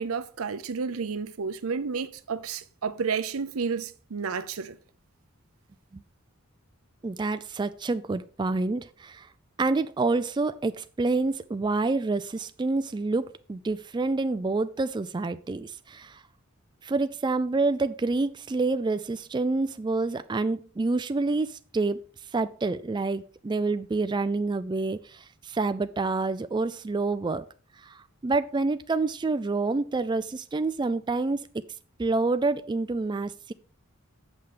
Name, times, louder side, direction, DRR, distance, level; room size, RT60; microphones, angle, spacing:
voice 1, 0.0-4.8, right 5 dB, 75° right, 0.6 m, -31 dB
voice 2, 7.0-9.3 9.6-16.2 16.8-22.0 22.3-27.5 27.8-31.6 32.0-33.5, right 3 dB, 20° right, 0.4 m, -28 dB
8.0 x 5.8 x 4.9 m
head